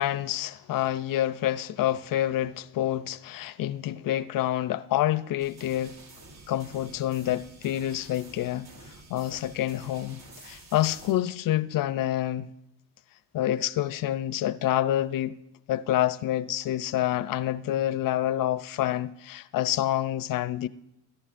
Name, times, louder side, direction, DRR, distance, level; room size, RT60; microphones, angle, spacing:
voice 1, 0.0-6.0 6.5-8.7 9.1-12.5 13.3-15.4 15.7-20.7, left 13 dB, 50° left, 0.4 m, -27 dB
sound 1, 5.4-11.1, right 2 dB, 60° right, 3.5 m, -49 dB
16.5 x 11.0 x 2.5 m
cardioid pair, 100°, 44 cm